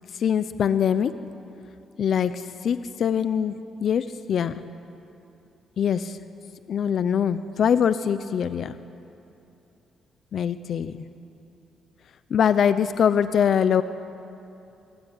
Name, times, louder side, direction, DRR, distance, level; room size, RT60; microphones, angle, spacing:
voice 1, 0.1-1.1 2.0-4.6 5.8-6.2 6.7-8.8 10.3-11.0 12.3-13.8, left 8 dB, 60° left, 12 dB, 0.8 m, -23 dB
26.0 x 21.5 x 9.9 m, 2.8 s
cardioid pair, 90°, 0 cm